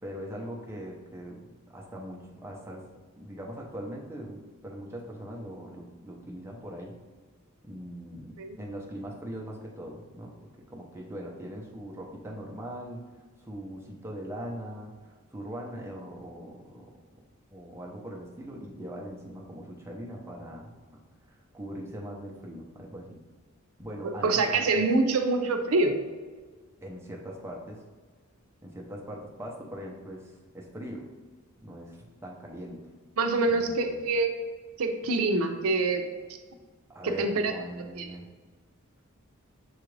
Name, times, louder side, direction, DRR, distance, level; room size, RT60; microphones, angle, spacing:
voice 1, 0.0-1.5 1.7-2.8 3.1-7.0 7.6-13.0 13.4-16.9 17.5-20.7 21.3-23.2 23.8-24.8 26.8-27.8 28.6-31.1 31.6-32.8 33.5-34.0 36.9-38.3, equal, 10° right, -2 dB, 0.6 m, -41 dB
voice 2, 24.0-26.0 33.2-34.3 34.8-36.0 37.0-37.5 38.0-38.1, right 3 dB, 80° right, 5 dB, 0.5 m, -25 dB
6.8 x 2.4 x 3.2 m, 1.4 s
head